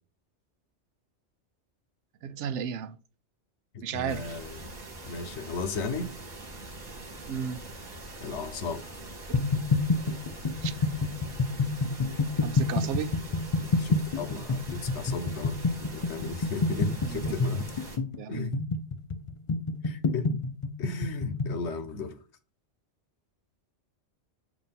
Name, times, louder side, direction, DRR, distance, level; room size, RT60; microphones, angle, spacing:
voice 1, 2.2-3.0 3.8-4.4 7.3-7.6 9.3-9.4 10.6-10.7 12.4-13.1 17.0-17.2 18.2-18.5, right 8 dB, 90° right, 0.9 m, -33 dB
voice 2, 3.7-4.7 5.1-6.1 8.2-8.8 13.8-17.7 18.3-18.6 19.8-20.3 20.8-22.2, left 4 dB, 75° left, 1.1 m, -35 dB
sound 1, 4.1-18.0, right 2 dB, 35° right, 1.5 m, -43 dB
sound 2, 9.3-21.6, left 3 dB, 55° left, 0.3 m, -28 dB
7.2 x 2.6 x 5.7 m
omnidirectional pair, 1.2 m